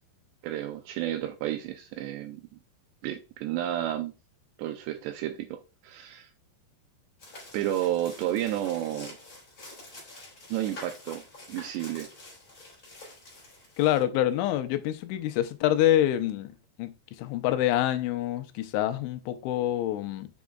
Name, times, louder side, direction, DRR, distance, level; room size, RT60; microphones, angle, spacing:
voice 1, 0.4-2.5 3.0-4.1 4.6-6.3 7.5-9.2 10.5-12.1, right 12 dB, 80° right, 2.5 m, -31 dB
sound 1, 7.2-14.0, left 2 dB, 20° left, 3.2 m, -47 dB
voice 2, 13.8-16.5 16.8-20.3, left 12 dB, 85° left, 3.1 m, -26 dB
8.1 x 6.2 x 2.3 m
omnidirectional pair, 5.3 m